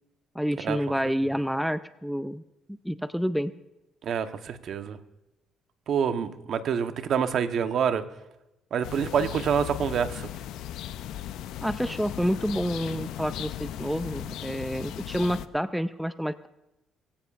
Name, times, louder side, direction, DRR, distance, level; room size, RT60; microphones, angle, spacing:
voice 1, 0.4-2.4 2.8-3.5 11.6-16.5, equal, ahead, 12 dB, 0.4 m, -28 dB
voice 2, 4.0-5.0 5.9-8.0 8.7-10.3, right 7 dB, 60° right, 8 dB, 1.0 m, -27 dB
sound 1, 8.8-15.5, left 11 dB, 85° left, 0.5 m, -37 dB
23.0 x 15.5 x 2.5 m, 0.93 s
cardioid pair, 125°, 0 cm